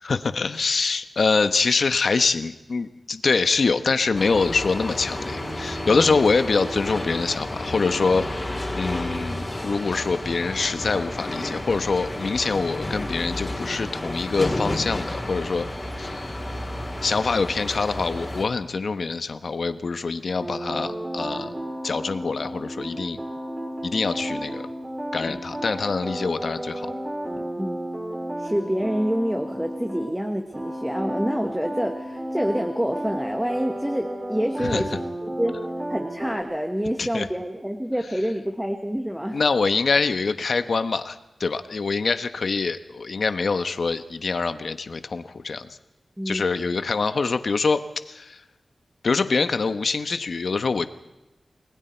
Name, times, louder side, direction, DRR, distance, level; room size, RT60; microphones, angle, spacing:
voice 1, 0.0-8.3 8.7-15.7 16.0-16.2 17.0-21.5 21.8-23.2 23.8-24.6 25.1-26.9 27.4-27.5 34.6-34.8 37.0-37.3 39.3-45.7 46.2-48.4 49.0-50.9, left 4 dB, 65° left, 10 dB, 1.2 m, -24 dB
sound 1, 4.1-18.5, left 1 dB, 20° left, 4.1 m, -31 dB
sound 2, 20.4-30.1 30.5-36.4, right 1 dB, 25° right, 6.1 m, -33 dB
voice 2, 28.4-35.6 35.9-39.4 46.2-46.5, equal, 5° right, 5 dB, 1.5 m, -27 dB
30.0 x 20.5 x 4.6 m, 1.0 s
wide cardioid pair, 115°, 0 cm